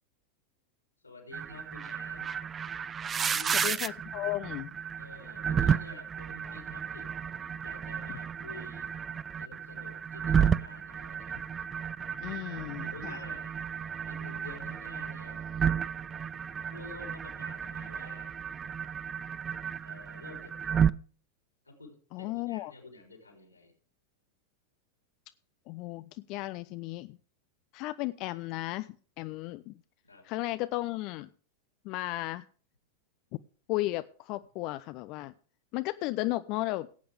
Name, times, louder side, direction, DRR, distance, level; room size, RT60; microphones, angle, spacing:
voice 1, 1.0-2.4 3.2-3.7 5.0-7.1 7.6-8.9 9.4-11.4 12.3-13.6 14.1-15.5 16.7-18.4 19.8-20.8 21.6-23.7 30.0-30.3, left 3 dB, 80° left, 3 dB, 3.4 m, -50 dB
sound 1, 1.3-20.9, right 7 dB, 20° right, 0.4 m, -32 dB
voice 2, 3.6-4.7 12.2-13.2 22.1-22.7 25.7-27.2 27.7-29.7 30.2-31.3 31.8-32.5 33.7-35.3 35.7-36.9, left 18 dB, 40° left, 14 dB, 0.4 m, -34 dB
17.5 x 8.7 x 3.5 m, 0.41 s
figure-of-eight pair, 90°, 0 cm